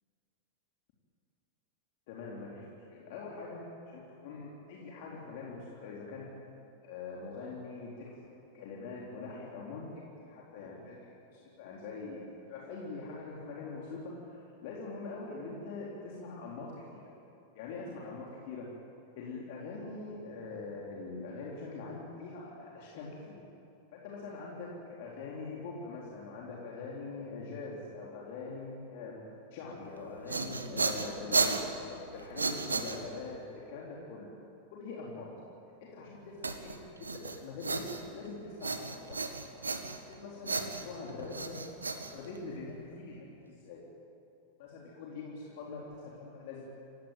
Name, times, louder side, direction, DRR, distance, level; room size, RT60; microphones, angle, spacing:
voice 1, 2.1-6.3 6.8-8.1 8.5-11.0 11.3-12.2 12.5-17.1 17.5-18.7 19.2-23.4 23.9-29.2 29.5-34.3 34.7-35.4 35.8-39.2 40.0-41.6 42.0-43.8 44.6-46.7, left 3 dB, 50° left, -4 dB, 4.1 m, -43 dB
sound 1, 30.0-33.4 36.4-38.3 38.6-40.1 40.4-42.7, right 4 dB, 75° right, 1.6 m, -34 dB
28.0 x 17.0 x 9.2 m, 2.7 s
figure-of-eight pair, 90°, 0 cm